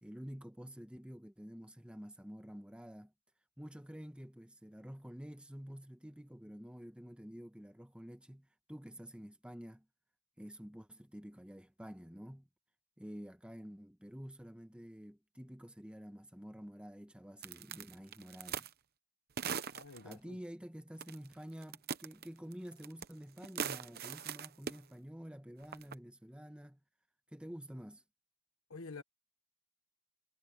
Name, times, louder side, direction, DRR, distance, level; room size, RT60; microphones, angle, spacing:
voice 1, 0.0-3.1 3.6-9.8 10.4-12.5 13.0-18.7 20.0-26.8 27.3-28.0, equal, 5° right, 1.2 m, -49 dB
sound 1, 17.4-18.7 19.4-20.1 21.0-21.3 21.6-23.1 23.4-24.8 25.6-25.9, right 7 dB, 45° right, 0.9 m, -40 dB
voice 2, 19.7-20.4 28.7-29.0, left 3 dB, 75° left, 1.3 m, -48 dB
head